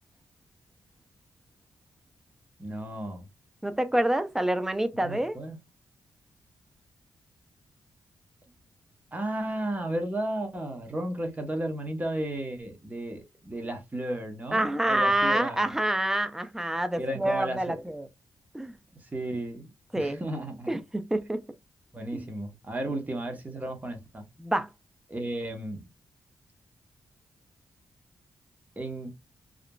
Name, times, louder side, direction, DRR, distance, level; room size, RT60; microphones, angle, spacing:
voice 1, 2.6-3.3 4.9-5.6 9.1-15.7 17.0-17.8 19.0-20.7 21.9-24.3 25.1-25.8 28.8-29.1, right 1 dB, 20° right, 0.9 m, -34 dB
voice 2, 3.6-5.4 14.5-18.1 18.5-18.7 19.9-20.2 20.7-21.4 22.1-22.3 24.4-24.7, right 1 dB, 5° right, 0.4 m, -27 dB
2.8 x 2.4 x 2.2 m
cardioid pair, 95°, 8 cm